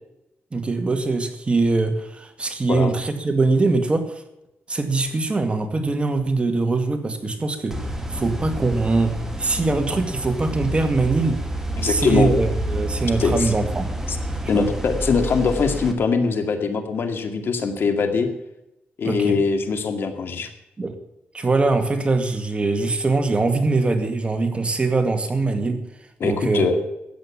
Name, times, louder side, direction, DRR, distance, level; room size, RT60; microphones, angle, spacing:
voice 1, 0.5-4.2 4.7-7.8 8.1-11.4 11.8-13.9 14.5-14.7 19.0-19.4 20.8-20.9 21.3-25.8 26.2-26.7, right 3 dB, 25° right, 6 dB, 2.2 m, -22 dB
sound 1, 7.7-15.9, right 1 dB, 10° right, 2.4 m, -29 dB
voice 2, 11.8-12.3 13.2-13.5 14.1-14.2 14.5-18.3 19.0-20.5 26.2-26.7, left 5 dB, 65° left, 7 dB, 2.2 m, -22 dB
14.0 x 9.3 x 7.2 m, 0.89 s
cardioid pair, 90°, 4 cm